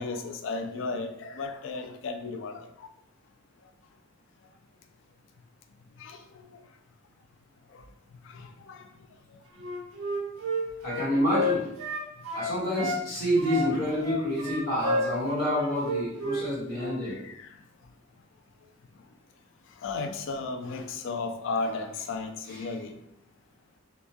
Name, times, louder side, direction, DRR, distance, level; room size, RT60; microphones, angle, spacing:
voice 1, 0.0-2.9 6.0-6.2 7.7-7.8 8.3-8.9 13.2-13.3 15.6-15.8 17.0-17.5 19.8-22.9, left 3 dB, 65° left, 6 dB, 0.3 m, -35 dB
Wind instrument woodwind instrument, 9.6-13.0 13.4-16.5 16.7-17.0, equal, 75° right, 0.7 m, -31 dB
voice 2, 10.8-11.6 12.3-17.1, equal, 45° left, -9 dB, 1.2 m, -28 dB
2.8 x 2.2 x 2.2 m, 0.78 s
head